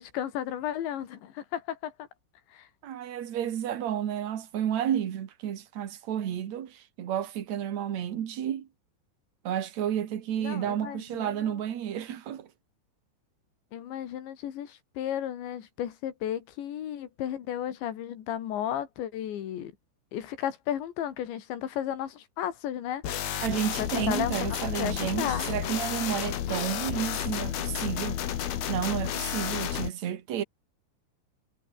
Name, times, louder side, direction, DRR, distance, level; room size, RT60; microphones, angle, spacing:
voice 1, 0.0-2.1 2.5-2.7 10.4-11.6 13.7-19.7 20.1-23.0 23.8-24.4 24.8-25.5, left 10 dB, 85° left, 4.7 m, -34 dB
voice 2, 2.8-8.7 9.4-12.5 23.4-28.2 28.7-30.4, right 10 dB, 55° right, 2.4 m, -31 dB
sound 1, 23.0-29.9, left 10 dB, 65° left, 3.9 m, -32 dB
omnidirectional pair, 5.0 m